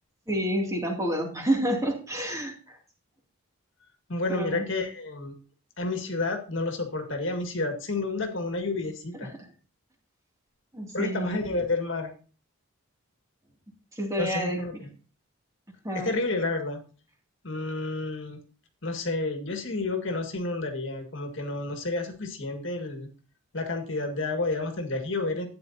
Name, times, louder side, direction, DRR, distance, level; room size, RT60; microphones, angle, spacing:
voice 1, 0.3-2.8 4.3-4.6 9.2-9.3 10.7-11.4 13.9-14.6 15.8-16.1, right 1 dB, 15° right, 0 dB, 2.6 m, -29 dB
voice 2, 4.1-5.3 5.8-9.3 10.9-12.1 14.2-14.9 15.9-16.8 17.4-18.4 18.8-23.1 23.5-25.5, left 2 dB, 60° left, 5 dB, 2.0 m, -30 dB
12.5 x 9.5 x 2.8 m, 0.36 s
head